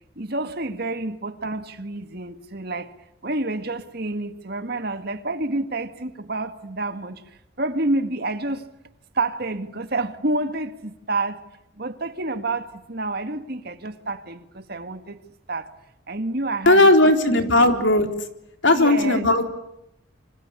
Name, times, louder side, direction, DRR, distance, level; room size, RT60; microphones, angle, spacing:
voice 1, 0.2-2.9 3.2-7.2 7.6-8.7 9.1-11.4 11.8-15.2 15.5-15.7 16.1-17.8 18.7-19.3, right 2 dB, 55° right, 1.9 m, -29 dB
voice 2, 16.7-18.1 18.6-19.4, left 1 dB, 70° left, 3.8 m, -16 dB
27.0 x 25.5 x 8.4 m
head